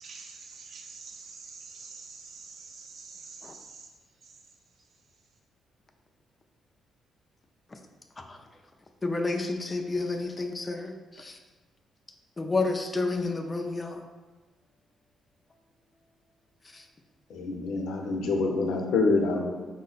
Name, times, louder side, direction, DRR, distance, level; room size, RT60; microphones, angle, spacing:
voice 1, 0.0-3.9, right 4 dB, 55° right, 1 dB, 0.5 m, -46 dB
voice 2, 9.0-11.4 12.4-14.1 16.7-16.9, left 3 dB, 25° left, 3 dB, 0.5 m, -30 dB
voice 3, 17.3-19.5, left 3 dB, 80° left, 2 dB, 0.7 m, -26 dB
5.5 x 2.1 x 3.9 m, 1.3 s
cardioid pair, 90°, 0 cm